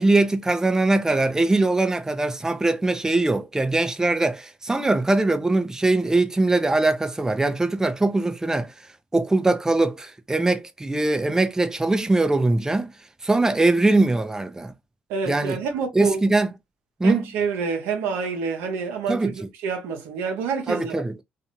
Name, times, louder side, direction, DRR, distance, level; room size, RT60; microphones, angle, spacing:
voice 1, 0.0-8.7 9.1-12.9 13.2-14.7 15.3-15.6 15.9-16.5 17.0-17.2 19.1-19.3 20.7-21.2, right 2 dB, 15° right, 0.6 m, -21 dB
voice 2, 15.1-16.2 17.0-19.3 19.6-21.0, right 5 dB, 80° right, 0.8 m, -27 dB
2.5 x 2.5 x 2.9 m
hypercardioid pair, 55°, 4 cm